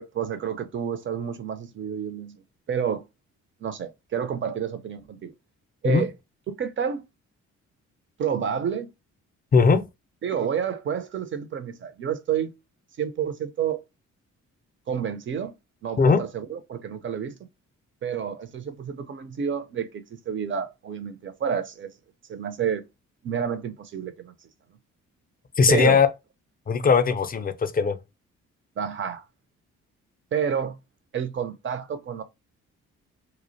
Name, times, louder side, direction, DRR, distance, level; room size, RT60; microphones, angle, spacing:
voice 1, 0.0-2.4 2.7-3.0 3.6-5.3 5.8-6.1 6.5-7.0 8.2-8.9 10.2-12.5 13.0-13.8 14.9-15.5 15.8-17.4 18.0-21.9 22.3-22.8 23.2-24.3 25.7-26.0 28.8-29.2 30.3-30.8 31.1-32.2, right 8 dB, 40° right, 0.5 m, -29 dB
voice 2, 9.5-9.9 16.0-16.2 25.6-26.1 26.7-28.0, left 5 dB, 30° left, 0.4 m, -19 dB
2.4 x 2.0 x 2.6 m
supercardioid pair, 60°, 32 cm